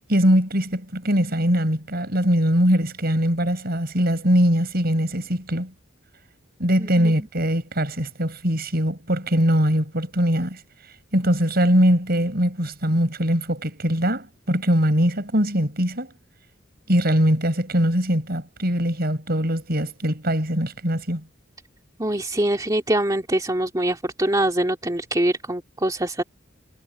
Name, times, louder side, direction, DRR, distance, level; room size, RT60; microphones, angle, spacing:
voice 1, 0.1-5.7 6.6-10.6 11.1-16.1 16.9-21.2, equal, 50° right, 7.4 m, -21 dB
voice 2, 6.8-7.1 22.0-26.2, right 1 dB, 20° right, 2.5 m, -24 dB
head